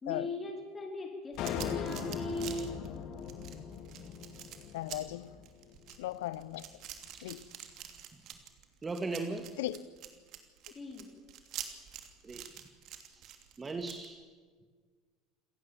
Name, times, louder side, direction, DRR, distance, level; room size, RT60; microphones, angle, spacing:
voice 1, 0.0-2.8 10.7-11.0, left 2 dB, 25° left, 4.8 m, -39 dB
sound 1, 1.3-14.1, right 10 dB, 50° right, 3.0 m, -47 dB
sound 2, 1.4-5.8, left 8 dB, 55° left, 2.0 m, -39 dB
voice 2, 4.7-5.4 6.0-6.7 7.2-7.5 9.6-9.8, left 15 dB, 70° left, 0.8 m, -37 dB
voice 3, 8.8-9.5 12.2-12.5 13.1-14.2, right 3 dB, 20° right, 2.1 m, -38 dB
28.5 x 17.5 x 7.3 m
hypercardioid pair, 70°, 0 cm